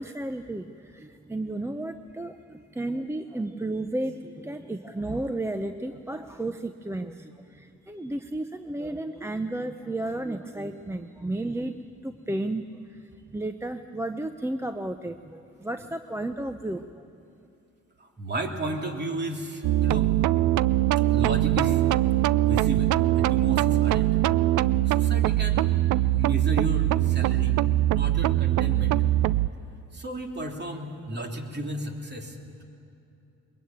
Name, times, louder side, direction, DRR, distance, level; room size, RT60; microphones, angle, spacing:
voice 1, 0.0-17.0, right 1 dB, 10° right, 8 dB, 0.7 m, -33 dB
voice 2, 18.0-20.1 21.1-21.8 22.4-24.2 24.8-25.8 26.2-27.6 27.9-29.0 29.9-32.6, right 1 dB, 35° right, 2 dB, 3.1 m, -33 dB
sound 1, 19.6-29.5, right 15 dB, 75° right, 0.5 m, -22 dB
22.5 x 21.0 x 9.1 m, 2.7 s
cardioid pair, 90°, 30 cm